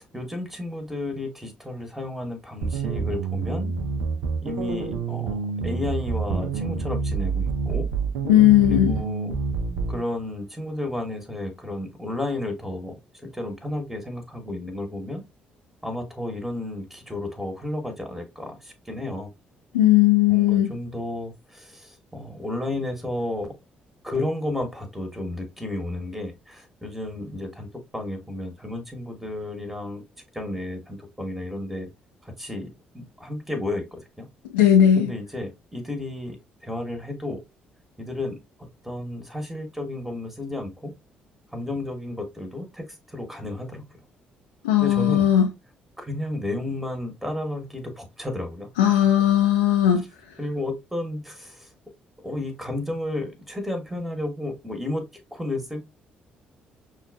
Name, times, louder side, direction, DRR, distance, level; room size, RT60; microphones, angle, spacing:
voice 1, 0.0-3.7 4.4-7.9 8.6-9.3 9.9-15.2 15.8-19.3 20.3-23.5 24.0-30.0 30.3-31.9 32.2-34.3 34.9-37.4 38.0-38.4 38.8-40.9 41.5-43.8 44.8-45.3 46.0-48.7 50.4-51.7 52.2-55.0 55.3-55.8, left 1 dB, 5° right, 1.1 m, -32 dB
sound 1, 2.6-10.0, right 5 dB, 65° right, 0.5 m, -27 dB
voice 2, 8.2-9.0 19.7-20.7 34.5-35.1 44.6-45.5 48.8-50.0, left 11 dB, 75° left, 0.5 m, -17 dB
6.0 x 2.3 x 2.3 m
figure-of-eight pair, 45°, 5 cm